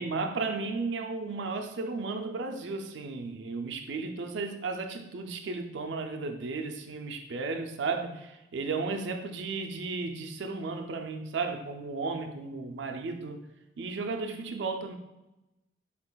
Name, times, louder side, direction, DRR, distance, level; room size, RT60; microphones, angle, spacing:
voice 1, 0.0-13.4 13.8-14.9, right 4 dB, 75° right, 5 dB, 0.4 m, -34 dB
4.2 x 3.8 x 2.3 m, 0.96 s
head